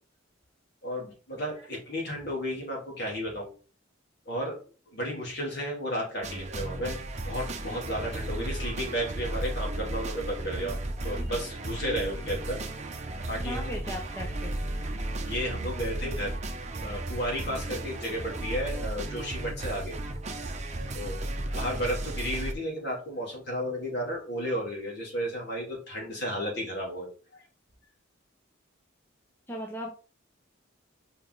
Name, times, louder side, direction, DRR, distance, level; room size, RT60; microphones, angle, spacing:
voice 1, 0.8-3.5 4.3-4.6 4.9-7.0 7.2-10.8 11.0-12.6 13.3-14.0 15.2-16.3 16.8-20.0 20.9-27.1, equal, 55° left, -2 dB, 3.0 m, -33 dB
sound 1, 6.2-22.5, right 1 dB, 35° right, 0.8 m, -34 dB
voice 2, 13.5-14.5 29.5-29.9, equal, 10° left, 1 dB, 0.8 m, -37 dB
5.3 x 5.0 x 4.0 m, 0.37 s
head